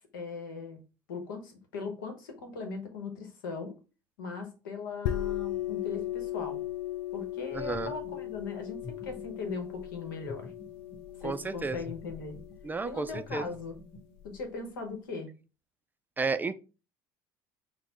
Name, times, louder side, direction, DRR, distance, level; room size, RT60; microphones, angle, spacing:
voice 1, 0.1-0.8 1.1-3.7 4.2-6.6 7.1-10.5 11.2-12.4 12.8-13.8 14.2-15.3, left 4 dB, 90° left, 0.9 m, -39 dB
sound 1, 5.1-14.4, left 13 dB, 65° left, 0.4 m, -37 dB
voice 2, 7.5-7.9 11.2-11.8 12.6-13.5 16.2-16.5, right 4 dB, 15° right, 0.3 m, -32 dB
sound 2, 7.9-8.4 8.8-9.8 10.3-11.3 11.7-12.7 13.1-14.2, left 3 dB, 10° left, 1.1 m, -48 dB
4.1 x 2.1 x 4.3 m
hypercardioid pair, 85°, 11 cm